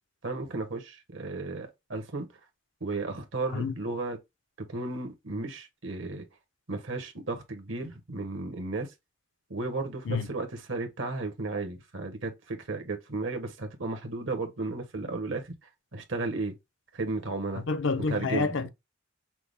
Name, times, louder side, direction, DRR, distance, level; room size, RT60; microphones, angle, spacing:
voice 1, 0.2-2.3 2.8-4.2 4.7-6.2 6.7-8.9 9.5-15.5 15.9-16.5 16.9-17.6 18.1-18.5, right 3 dB, 75° right, 1.2 m, -34 dB
voice 2, 17.7-18.7, left 4 dB, 70° left, 0.5 m, -28 dB
5.8 x 2.1 x 3.4 m
head